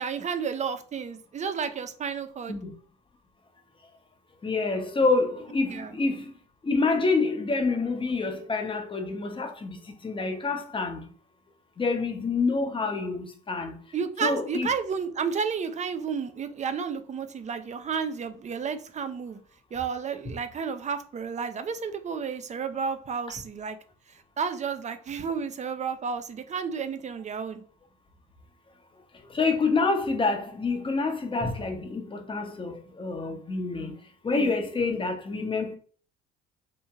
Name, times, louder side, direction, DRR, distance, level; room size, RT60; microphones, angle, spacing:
voice 1, 0.0-2.6 5.7-5.9 13.9-19.4 19.7-23.8 24.1-27.6 34.3-34.6, right 6 dB, 25° right, 0.4 m, -32 dB
voice 2, 4.4-6.3 6.6-11.1 11.8-13.8 14.2-14.7 29.3-34.0 34.2-35.8, left 3 dB, 20° left, 0.7 m, -27 dB
2.8 x 2.6 x 2.3 m
hypercardioid pair, 55°, 29 cm